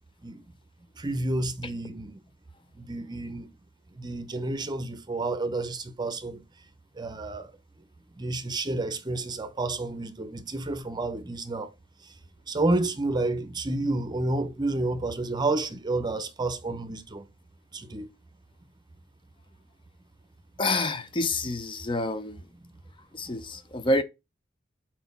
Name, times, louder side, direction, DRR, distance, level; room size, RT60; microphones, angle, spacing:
voice 1, 1.0-2.2 2.8-3.5 3.9-6.4 7.0-7.5 8.2-11.7 12.0-12.1 12.5-17.2 17.7-18.1, right 2 dB, 20° right, 0.7 m, -30 dB
voice 2, 20.6-22.4 23.1-24.0, left 2 dB, 25° left, 0.5 m, -28 dB
4.5 x 4.2 x 5.3 m
head